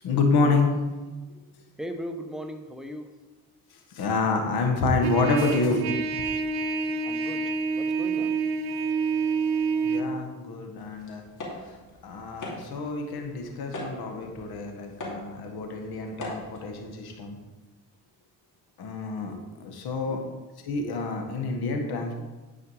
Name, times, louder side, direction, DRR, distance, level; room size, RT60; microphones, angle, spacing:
voice 1, 0.0-0.8 3.9-6.0 6.3-6.4 9.8-11.2 11.7-11.8 12.0-17.4 18.8-20.2 20.6-22.1, left 3 dB, 80° left, 3 dB, 1.5 m, -28 dB
voice 2, 1.8-3.1 7.0-7.4 7.8-8.4 20.1-20.4, equal, ahead, 5 dB, 0.9 m, -38 dB
Trumpet, 5.0-10.0, right 4 dB, 85° right, 0.8 m, -27 dB
sound 1, 10.7-17.2, left 1 dB, 55° left, 2.8 m, -42 dB
10.0 x 4.9 x 4.8 m, 1.2 s
cardioid pair, 80°, 37 cm